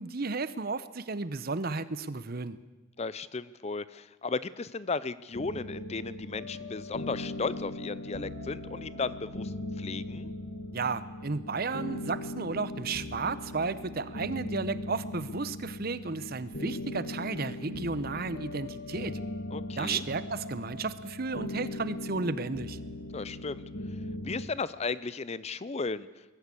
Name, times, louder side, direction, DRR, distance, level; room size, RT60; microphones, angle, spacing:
voice 1, 0.0-2.6 10.7-19.2 19.8-22.8, right 4 dB, 50° right, 15 dB, 0.8 m, -33 dB
voice 2, 3.0-10.3 19.5-20.0 23.1-23.6 24.2-26.2, left 4 dB, 30° left, 17 dB, 0.5 m, -35 dB
sound 1, 5.3-24.5, left 1 dB, 55° left, 1.9 m, -39 dB
21.5 x 14.5 x 8.5 m, 1.2 s
head